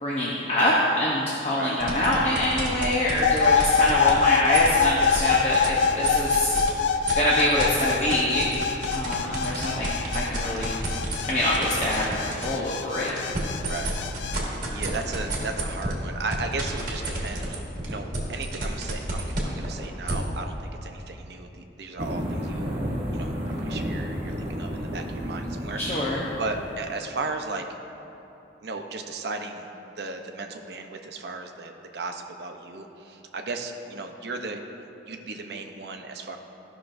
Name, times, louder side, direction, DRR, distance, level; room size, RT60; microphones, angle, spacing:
voice 1, 0.0-6.5 6.9-8.5 8.9-10.8 11.3-13.1 25.8-26.2, left 1 dB, 35° left, -5 dB, 0.8 m, -25 dB
sound 1, 1.8-6.7 7.1-12.5 12.9-20.1, right 2 dB, 45° right, 1.4 m, -30 dB
sound 2, 3.2-14.4, left 6 dB, 75° left, 0.3 m, -25 dB
voice 2, 13.7-14.0 14.7-22.7 23.1-26.0 26.4-27.7 28.6-29.7 29.9-34.6 35.1-36.4, right 3 dB, 60° right, 4 dB, 0.6 m, -35 dB
sound 3, 22.0-26.9, equal, 30° right, 1.2 m, -32 dB
14.0 x 5.8 x 2.6 m, 3.0 s
head